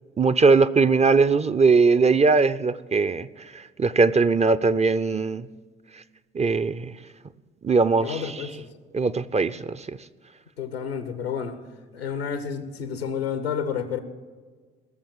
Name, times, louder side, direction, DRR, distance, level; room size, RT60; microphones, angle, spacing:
voice 1, 0.2-3.3 3.8-5.5 6.3-6.9 7.6-8.2 8.9-9.9, right 4 dB, 20° right, 14 dB, 0.6 m, -20 dB
voice 2, 8.0-8.7 10.6-11.6 11.9-14.0, left 7 dB, 85° left, 10 dB, 1.1 m, -30 dB
19.0 x 7.1 x 7.3 m, 1.5 s
figure-of-eight pair, 45°, 30 cm